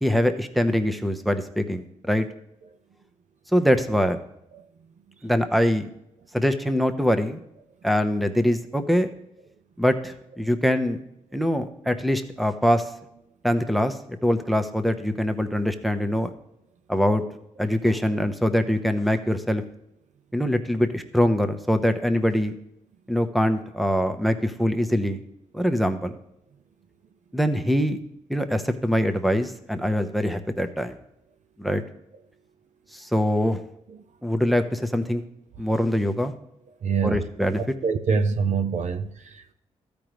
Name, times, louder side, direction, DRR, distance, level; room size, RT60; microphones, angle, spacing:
voice 1, 0.0-2.3 3.5-4.2 5.2-5.9 6.3-7.4 7.8-9.1 9.8-11.0 11.3-12.9 13.4-16.3 16.9-17.2 17.6-19.6 20.3-22.5 23.1-25.2 25.5-26.1 27.3-28.0 28.3-31.0 31.6-31.8 32.9-33.6 34.2-35.2 35.6-36.3 37.0-37.6, equal, ahead, 1.0 m, -23 dB
voice 2, 36.8-37.3 37.8-39.5, right 5 dB, 50° right, 0.7 m, -25 dB
15.0 x 5.2 x 3.2 m
hypercardioid pair, 40°, 16 cm